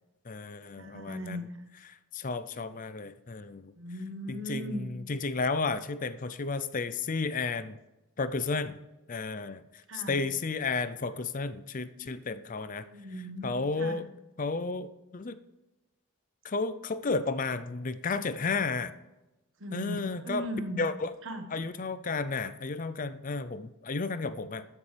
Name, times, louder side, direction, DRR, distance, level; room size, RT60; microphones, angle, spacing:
voice 1, 0.3-1.4 1.9-3.7 4.3-7.8 8.2-8.8 9.1-9.6 9.9-12.9 13.4-14.1 14.4-15.4 16.4-18.9 19.7-20.5 20.8-21.1 21.5-24.7, left 4 dB, 35° left, 13 dB, 0.5 m, -32 dB
voice 2, 0.8-1.6 3.8-4.9 9.9-10.2 11.9-12.0 12.8-14.0 19.6-20.8 21.2-21.4, equal, 55° right, 6 dB, 1.3 m, -38 dB
13.0 x 9.6 x 3.4 m, 1.0 s
head